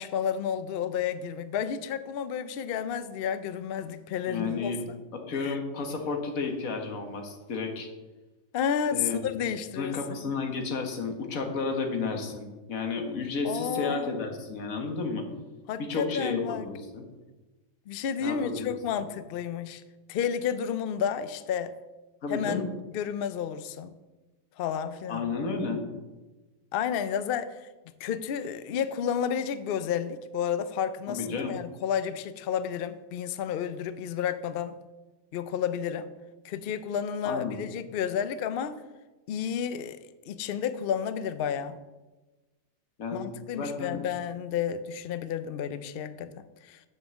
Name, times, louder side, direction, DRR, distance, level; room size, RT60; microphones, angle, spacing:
voice 1, 0.0-4.7 5.3-5.6 8.5-10.3 13.4-14.2 15.7-16.7 17.9-19.8 20.1-21.8 22.3-23.9 24.6-25.3 26.7-27.7 28.0-34.8 35.3-36.1 36.4-38.8 39.3-40.0 40.3-41.8 43.1-46.8, left 8 dB, 65° left, 13 dB, 0.6 m, -31 dB
voice 2, 4.3-4.8 5.1-7.9 8.9-9.3 9.8-15.3 15.8-17.0 18.2-18.7 19.0-19.1 22.2-22.7 25.1-25.8 31.1-31.5 37.2-37.6 43.0-44.1, left 4 dB, 80° left, 4 dB, 1.6 m, -32 dB
7.5 x 5.4 x 6.9 m, 1.2 s
omnidirectional pair, 1.4 m